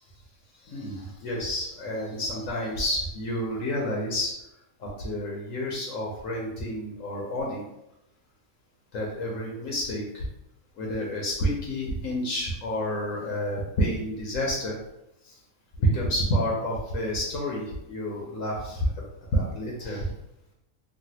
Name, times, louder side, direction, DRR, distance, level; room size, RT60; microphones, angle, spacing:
voice 1, 0.6-4.3 4.8-7.6 8.9-10.2 10.8-14.8 15.2-15.4 15.8-18.9 19.3-20.1, equal, 75° left, -3 dB, 1.0 m, -29 dB
3.1 x 2.4 x 2.7 m, 0.86 s
omnidirectional pair, 1.4 m